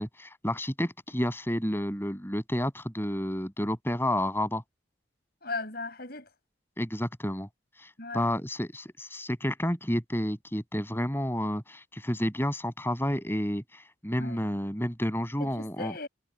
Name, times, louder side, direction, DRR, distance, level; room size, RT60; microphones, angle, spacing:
voice 1, 0.0-4.6 6.8-7.5 7.8-15.9, equal, 10° left, 6.9 m, -30 dB
voice 2, 5.4-6.3 8.0-8.3 14.2-14.4 15.4-16.1, left 3 dB, 50° left, 7.5 m, -37 dB
head